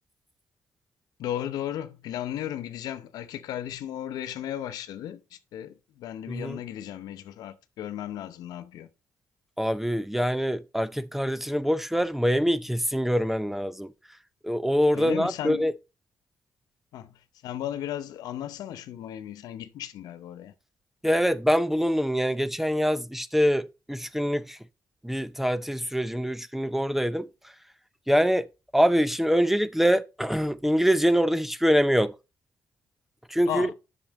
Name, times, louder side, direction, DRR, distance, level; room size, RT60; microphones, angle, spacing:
voice 1, 1.2-8.9 14.9-15.7 16.9-20.5 33.5-33.7, left 11 dB, 85° left, 0.7 m, -35 dB
voice 2, 6.3-6.6 9.6-13.9 14.4-15.7 21.0-24.6 25.0-27.3 28.1-28.5 28.7-32.1 33.3-33.7, equal, 5° right, 0.5 m, -24 dB
7.3 x 6.0 x 4.0 m
cardioid pair, 75°, 7 cm